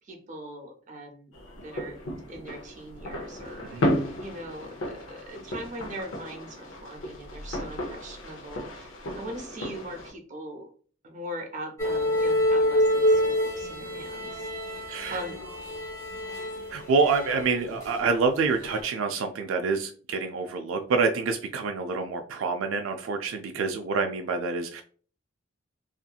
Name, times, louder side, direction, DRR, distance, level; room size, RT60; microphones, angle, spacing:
voice 1, 0.1-1.3 1.6-2.0 2.3-3.8 4.2-10.7 11.0-13.2 13.5-14.5 15.1-15.3, right 1 dB, 40° right, 2 dB, 0.6 m, -40 dB
sound 1, 1.3-10.1, left 1 dB, 80° left, 0.6 m, -34 dB
sound 2, 11.8-18.2 18.5-18.8, equal, 20° left, 0.9 m, -27 dB
voice 2, 16.7-24.8, right 4 dB, 85° right, 5 dB, 0.3 m, -27 dB
2.7 x 2.5 x 2.3 m, 0.43 s
head